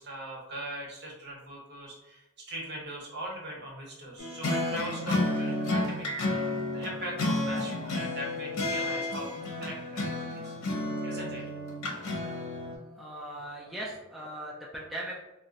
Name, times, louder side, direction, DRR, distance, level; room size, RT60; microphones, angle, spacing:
voice 1, 0.0-6.1 6.7-10.5 11.0-11.4, right 1 dB, 50° right, -2 dB, 1.0 m, -40 dB
sound 1, 4.2-12.8, left 2 dB, 85° left, 0.7 m, -31 dB
voice 2, 12.7-15.2, right 1 dB, ahead, -5 dB, 0.3 m, -39 dB
2.4 x 2.1 x 3.9 m, 1.0 s
head